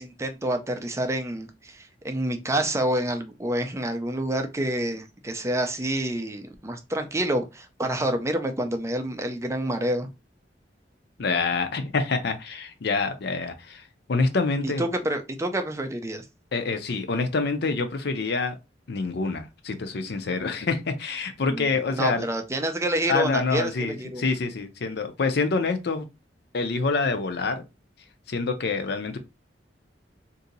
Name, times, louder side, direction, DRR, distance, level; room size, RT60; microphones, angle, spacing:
voice 1, 0.0-10.1 14.6-16.2 21.5-24.2, right 1 dB, 15° right, 0.5 m, -28 dB
voice 2, 11.2-14.9 16.5-18.6 18.9-22.3 23.1-26.1 26.5-27.6 28.3-29.2, left 4 dB, 65° left, 0.6 m, -26 dB
2.7 x 2.6 x 3.9 m
head